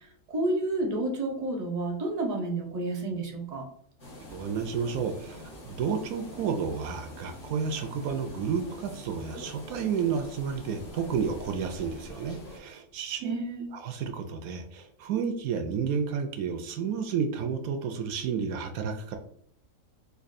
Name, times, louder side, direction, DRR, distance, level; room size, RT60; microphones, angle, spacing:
voice 1, 0.3-3.7 13.2-13.7, right 2 dB, 35° right, 1 dB, 0.6 m, -30 dB
sound 1, 4.0-12.6, left 1 dB, 55° left, 1.7 m, -45 dB
voice 2, 4.3-13.3 13.7-19.2, right 6 dB, 75° right, 5 dB, 1.0 m, -31 dB
4.6 x 2.6 x 2.5 m, 0.67 s
omnidirectional pair, 1.6 m